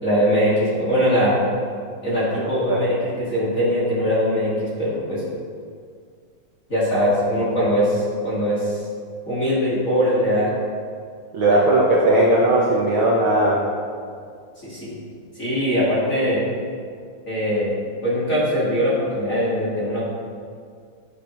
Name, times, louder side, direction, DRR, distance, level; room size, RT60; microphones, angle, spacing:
voice 1, 0.0-1.4 2.0-5.2 6.7-8.9 9.3-10.5 11.5-11.6 12.1-12.2 14.6-15.0 15.4-16.4 17.3-17.8 18.0-20.0, equal, 30° left, -8 dB, 1.9 m, -21 dB
voice 2, 11.3-13.6, right 1 dB, 70° right, -4 dB, 1.2 m, -17 dB
13.5 x 8.3 x 3.1 m, 2.1 s
omnidirectional pair, 3.9 m